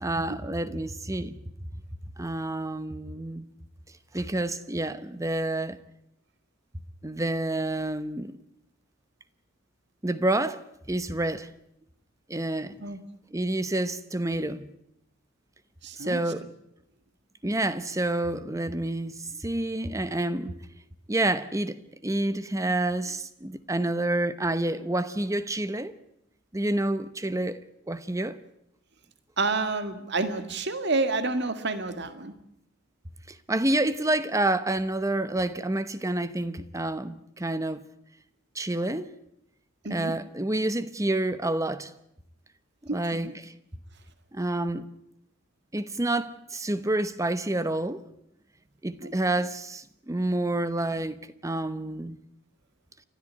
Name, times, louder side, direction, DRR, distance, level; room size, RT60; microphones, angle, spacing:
voice 1, 0.0-1.4 2.2-3.5 4.1-5.8 7.0-8.4 10.0-10.6 10.9-11.5 12.3-12.8 13.3-14.7 16.0-16.4 17.4-20.5 21.1-25.9 26.5-27.6 27.9-28.4 33.3-37.8 38.5-39.1 39.9-41.9 42.9-43.5 44.3-44.9 45.7-48.0 48.8-51.2 51.4-52.2, right 1 dB, 15° right, 0.9 m, -28 dB
voice 2, 15.8-16.2 29.4-32.3 39.9-40.1 42.9-43.3 49.0-49.3, right 3 dB, 55° right, 1.9 m, -29 dB
29.5 x 13.0 x 9.6 m
head